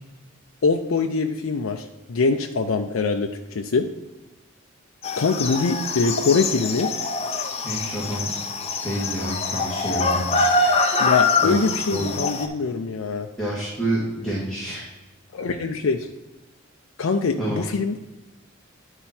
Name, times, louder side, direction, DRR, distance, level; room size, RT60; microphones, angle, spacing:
voice 1, 0.6-3.9 5.2-6.9 11.0-13.3 15.3-16.1 17.0-18.1, left 4 dB, 80° left, 4 dB, 0.5 m, -23 dB
sound 1, 5.0-12.5, left 3 dB, 30° left, 0.6 m, -24 dB
voice 2, 7.6-8.3 8.8-10.7 11.4-11.6 11.9-12.2 13.4-14.8 17.4-17.7, right 1 dB, 5° left, -8 dB, 1.8 m, -28 dB
10.5 x 4.5 x 4.3 m, 1.1 s
head